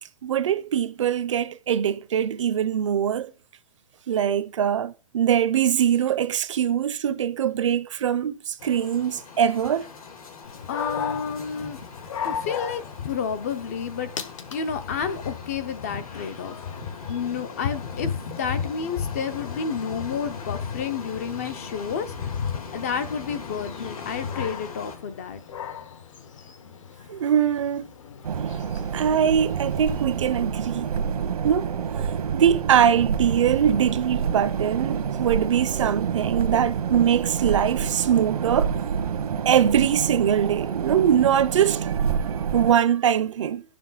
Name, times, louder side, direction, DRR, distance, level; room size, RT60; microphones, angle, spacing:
voice 1, 0.2-3.3 4.1-9.9 27.1-27.9 28.9-30.9 31.4-31.7 32.3-38.7 39.4-42.1 42.5-43.6, right 9 dB, 55° right, 0.7 m, -22 dB
sound 1, 8.6-25.0, left 5 dB, 70° left, 2.7 m, -41 dB
Dog, 10.4-30.0, left 7 dB, 55° left, 1.2 m, -36 dB
voice 2, 10.7-11.8 12.2-14.1 14.5-16.6 17.1-22.1 22.7-25.4 28.0-28.1, left 6 dB, 25° left, 0.6 m, -30 dB
sound 2, 28.2-42.7, right 7 dB, 85° right, 1.2 m, -28 dB
11.0 x 6.9 x 4.0 m
hypercardioid pair, 180°, 19 cm